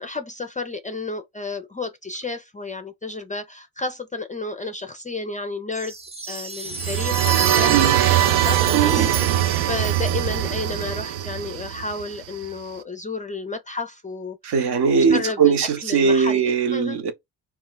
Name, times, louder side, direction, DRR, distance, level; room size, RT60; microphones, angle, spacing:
voice 1, 0.0-5.9 6.3-7.9 8.2-8.9 9.6-14.4 14.9-15.5 15.8-17.0, left 3 dB, 20° left, 0.4 m, -31 dB
sound 1, 5.7-10.5, right 2 dB, 15° right, 0.8 m, -33 dB
sound 2, 6.7-12.4, right 13 dB, 80° right, 0.5 m, -21 dB
voice 2, 7.7-8.1 8.7-9.4 14.4-17.1, right 6 dB, 55° right, 0.9 m, -20 dB
2.2 x 2.1 x 3.8 m
supercardioid pair, 60°, 47 cm